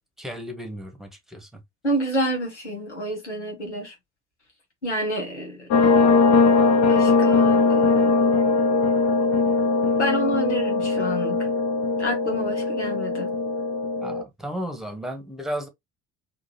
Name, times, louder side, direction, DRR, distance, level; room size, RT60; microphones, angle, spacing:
voice 1, 0.2-1.6 14.0-15.7, equal, ahead, 1.1 m, -34 dB
voice 2, 1.8-3.9 4.8-5.7 6.9-8.2 10.0-11.5 12.0-13.3, equal, 90° left, 1.1 m, -29 dB
sound 1, 5.7-14.2, left 4 dB, 50° left, 0.7 m, -20 dB
3.7 x 2.6 x 2.7 m
figure-of-eight pair, 55°, 34 cm